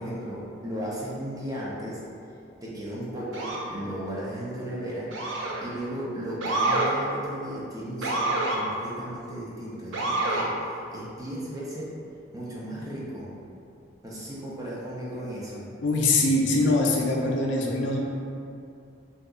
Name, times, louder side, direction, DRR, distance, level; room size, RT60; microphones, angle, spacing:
voice 1, 0.0-2.0 2.6-5.1 5.6-10.5 10.9-11.9 12.3-13.3 14.0-15.7, right 1 dB, 20° right, -7 dB, 0.5 m, -35 dB
Motor vehicle (road) / Siren, 3.3-3.7 5.1-5.7 6.4-6.9 8.0-8.6 9.9-10.5, right 2 dB, 75° right, 0.5 m, -27 dB
voice 2, 15.8-18.0, left 2 dB, 70° left, -2 dB, 0.4 m, -23 dB
2.7 x 2.3 x 3.6 m, 2.5 s
head